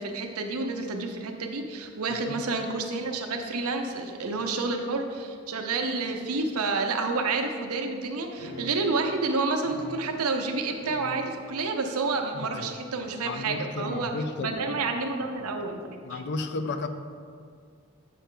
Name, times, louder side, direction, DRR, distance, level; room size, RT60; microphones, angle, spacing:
voice 1, 0.0-14.1 14.4-15.8 16.1-16.2, right 3 dB, 75° right, 4 dB, 0.7 m, -29 dB
sound 1, 8.4-10.5 10.8-11.8 12.1-12.2 13.0-13.8, equal, 90° left, 1.9 m, -43 dB
voice 2, 12.3-12.7 13.2-14.6 16.0-16.9, left 3 dB, 50° left, 9 dB, 0.5 m, -33 dB
8.3 x 5.5 x 3.8 m, 2.1 s
head